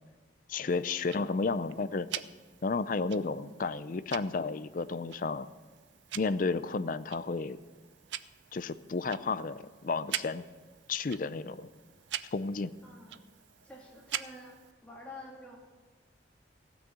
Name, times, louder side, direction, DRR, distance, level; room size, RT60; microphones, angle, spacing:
voice 1, 0.5-2.1 2.6-5.5 6.1-7.6 8.5-10.4 10.9-11.7 12.3-12.7, left 4 dB, 45° left, 15 dB, 0.5 m, -32 dB
Tick-tock, 0.7-14.7, right 11 dB, 80° right, 0.5 m, -45 dB
voice 2, 12.8-13.2 13.6-14.6 14.8-15.6, left 1 dB, 5° left, -3 dB, 1.9 m, -48 dB
16.0 x 6.2 x 8.3 m, 1.4 s
head